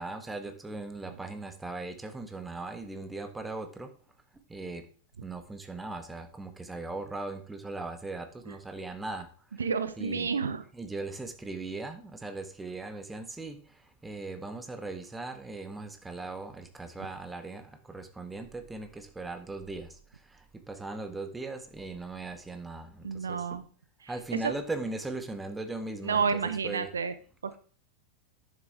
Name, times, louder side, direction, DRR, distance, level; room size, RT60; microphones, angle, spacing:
voice 1, 0.0-3.9 4.5-4.9 5.2-9.6 10.0-10.3 10.7-23.6 24.1-26.9, right 3 dB, 10° right, 7 dB, 1.4 m, -39 dB
voice 2, 9.6-10.6 23.0-23.6 24.0-24.1 24.4-24.5 26.0-27.1 27.4-27.6, right 5 dB, 70° right, 12 dB, 0.7 m, -30 dB
10.5 x 7.4 x 3.5 m, 0.43 s
figure-of-eight pair, 90°, 0 cm